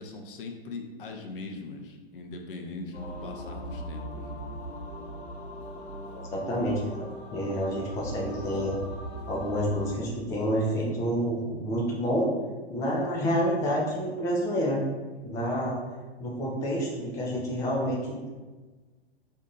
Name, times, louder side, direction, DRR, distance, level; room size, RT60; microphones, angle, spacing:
voice 1, 0.0-4.5, left 3 dB, 55° left, 3 dB, 0.6 m, -40 dB
sound 1, 2.9-9.9, equal, 80° left, 1.2 m, -39 dB
voice 2, 6.3-7.1 7.3-8.7 9.3-12.3 12.7-14.8 15.2-15.8 16.2-18.3, equal, 10° left, -4 dB, 0.4 m, -28 dB
2.7 x 2.5 x 3.8 m, 1.3 s
figure-of-eight pair, 105°, 32 cm